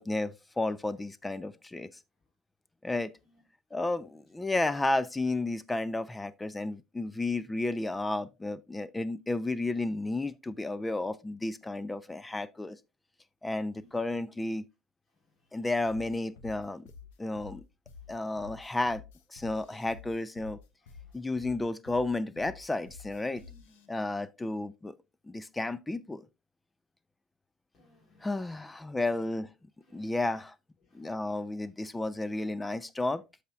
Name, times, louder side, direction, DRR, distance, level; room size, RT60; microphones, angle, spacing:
voice 1, 0.0-1.9 2.8-3.1 3.7-12.8 13.4-14.6 15.5-16.9 17.2-17.6 18.1-19.0 19.3-20.6 21.1-23.4 23.9-24.9 25.2-26.3 28.2-29.5 29.9-30.5 30.9-33.2, left 2 dB, 15° left, 0.6 m, -32 dB
voice 2, 15.1-15.7 17.2-17.5 17.9-18.4 20.8-21.5 23.2-24.1 27.7-29.3 29.8-30.4 30.8-31.4, left 2 dB, 50° left, 3.6 m, -65 dB
sound 1, 15.9-23.9, left 5 dB, 75° left, 1.0 m, -50 dB
13.5 x 5.0 x 2.4 m
hypercardioid pair, 65°, 0 cm